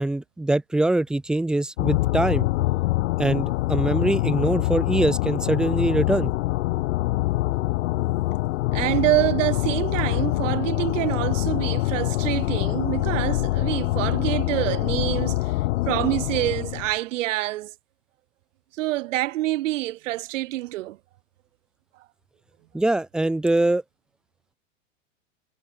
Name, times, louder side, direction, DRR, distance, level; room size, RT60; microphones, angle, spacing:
voice 1, 0.0-2.5 3.2-6.3 22.7-23.8, right 2 dB, ahead, 0.3 m, -23 dB
sound 1, 1.8-16.9, left 18 dB, 65° left, 0.7 m, -25 dB
voice 2, 8.7-15.6 15.9-17.7 18.8-21.0, right 17 dB, 75° right, 0.6 m, -26 dB
hypercardioid pair, 105°, 38 cm